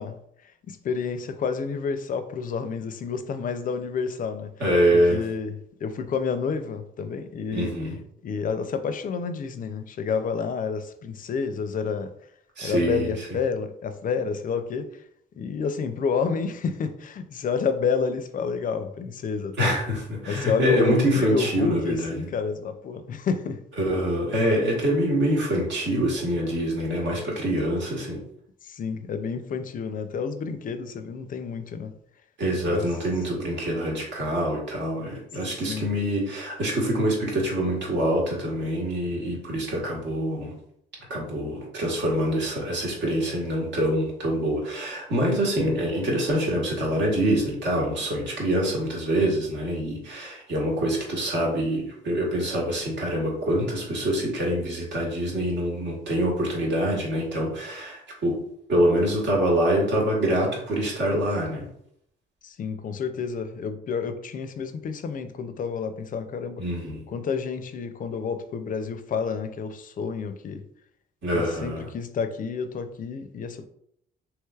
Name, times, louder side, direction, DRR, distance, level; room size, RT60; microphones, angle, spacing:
voice 1, 0.0-4.5 4.9-5.6 5.8-7.7 8.2-12.1 12.6-15.0 15.4-19.7 20.3-23.6 28.6-31.9 32.6-32.9 35.7-35.9 62.4-66.6 67.1-70.6 71.3-73.7, left 5 dB, 45° left, 0.4 m, -29 dB
voice 2, 4.6-5.2 7.5-7.9 12.6-13.3 19.6-22.2 23.8-28.2 32.4-40.5 41.1-58.4 58.7-61.7 66.6-67.0 71.2-71.9, right 1 dB, 65° right, 1.2 m, -25 dB
3.2 x 2.9 x 2.3 m
cardioid pair, 90°, 20 cm